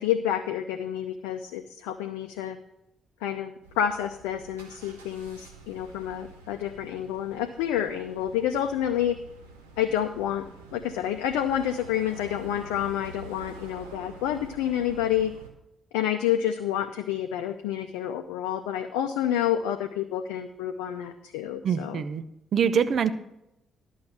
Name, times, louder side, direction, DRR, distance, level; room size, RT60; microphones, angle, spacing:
voice 1, 0.0-2.6 3.2-9.2 9.8-10.4 10.7-15.3 15.9-22.0, left 10 dB, 75° left, 6 dB, 0.6 m, -29 dB
sound 1, 3.6-15.5, right 3 dB, 85° right, 1.1 m, -48 dB
voice 2, 21.6-22.2 22.5-23.1, right 7 dB, 55° right, 12 dB, 0.7 m, -24 dB
11.5 x 6.5 x 5.7 m, 0.85 s
figure-of-eight pair, 40°, 0 cm